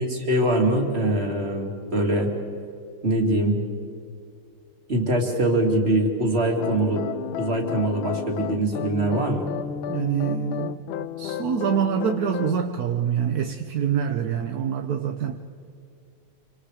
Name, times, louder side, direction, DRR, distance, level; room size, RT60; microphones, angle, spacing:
voice 1, 0.0-2.3 3.0-3.6 4.9-7.0 7.4-9.5, right 1 dB, 30° right, 2 dB, 3.0 m, -23 dB
sound 1, 6.6-12.6, left 9 dB, 75° left, 1.5 m, -32 dB
voice 2, 9.9-10.8 11.2-15.4, right 8 dB, 55° right, 6 dB, 1.2 m, -25 dB
27.0 x 26.0 x 5.0 m, 2.4 s
omnidirectional pair, 2.3 m